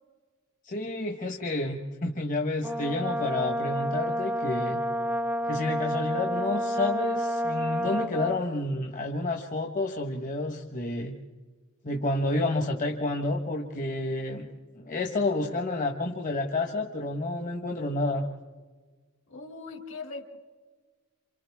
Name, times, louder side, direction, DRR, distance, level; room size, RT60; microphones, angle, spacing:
voice 1, 0.6-4.8 5.5-11.1 11.8-14.5 14.7-18.2, left 2 dB, 35° left, 2 dB, 1.4 m, -30 dB
Brass instrument, 2.6-8.5, equal, 5° right, 0.5 m, -30 dB
voice 2, 19.3-20.4, left 3 dB, 60° left, 3 dB, 3.1 m, -40 dB
28.5 x 27.5 x 3.6 m, 1.4 s
head